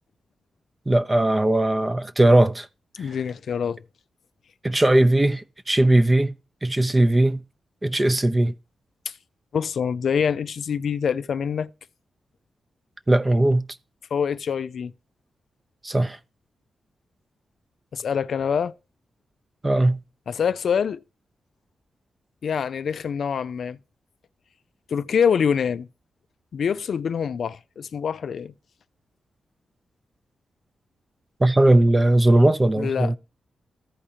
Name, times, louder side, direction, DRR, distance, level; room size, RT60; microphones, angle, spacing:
voice 1, 0.9-2.7 4.6-6.3 6.6-7.4 7.8-8.5 13.1-13.6 15.8-16.2 19.6-20.0 31.4-33.2, right 1 dB, 15° right, 0.6 m, -19 dB
voice 2, 3.0-3.8 9.1-9.2 9.5-11.7 14.1-14.9 17.9-18.7 20.3-21.0 22.4-23.8 24.9-25.9 26.5-28.5 32.8-33.1, left 7 dB, 65° left, 0.4 m, -25 dB
15.0 x 4.9 x 2.8 m
wide cardioid pair, 145°, 0 cm